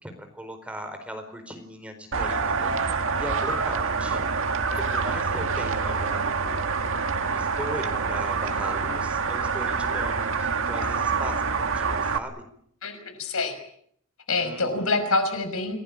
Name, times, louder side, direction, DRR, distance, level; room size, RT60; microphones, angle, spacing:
voice 1, 0.0-6.6 7.2-12.4 14.4-15.0, equal, 5° right, 6 dB, 4.4 m, -39 dB
sound 1, 2.1-12.2, right 5 dB, 65° right, 2.0 m, -26 dB
voice 2, 12.8-13.6 14.3-15.8, left 3 dB, 70° left, 8 dB, 5.6 m, -26 dB
28.0 x 19.0 x 8.8 m, 0.67 s
head